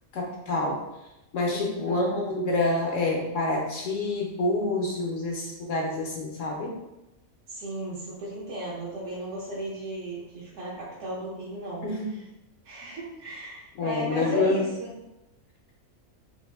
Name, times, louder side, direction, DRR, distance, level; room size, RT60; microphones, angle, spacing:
voice 1, 0.1-0.8 1.3-6.7 11.8-12.1 13.8-14.6, left 2 dB, 70° left, -1 dB, 0.9 m, -27 dB
voice 2, 1.5-2.2 7.5-12.3 12.6-14.9, equal, 65° right, -7 dB, 1.1 m, -35 dB
3.4 x 2.5 x 3.2 m, 0.92 s
omnidirectional pair, 1.5 m